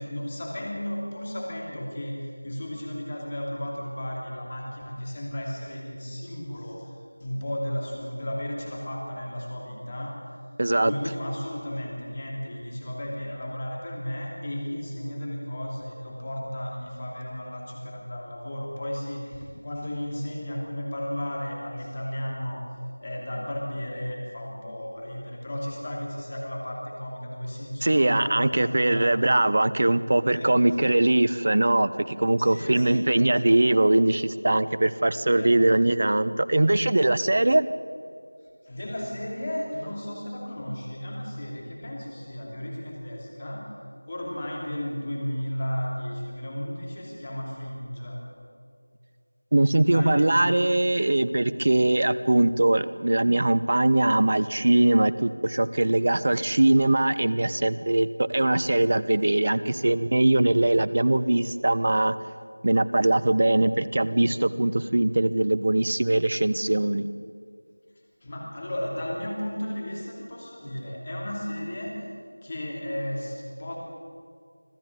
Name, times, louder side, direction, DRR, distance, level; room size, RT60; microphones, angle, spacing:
voice 1, 0.0-6.9 7.2-10.3 10.8-22.7 23.0-29.1 30.3-30.8 32.4-33.4 35.4-35.7 38.7-43.8 44.1-48.3 49.8-50.6 68.2-72.0 72.4-73.8, equal, 20° left, -1 dB, 2.7 m, -34 dB
voice 2, 10.6-10.9 27.8-37.6 49.5-62.1 62.6-67.1, right 2 dB, 30° right, 15 dB, 0.6 m, -21 dB
25.5 x 15.0 x 8.3 m, 2.2 s
figure-of-eight pair, 175°, 0 cm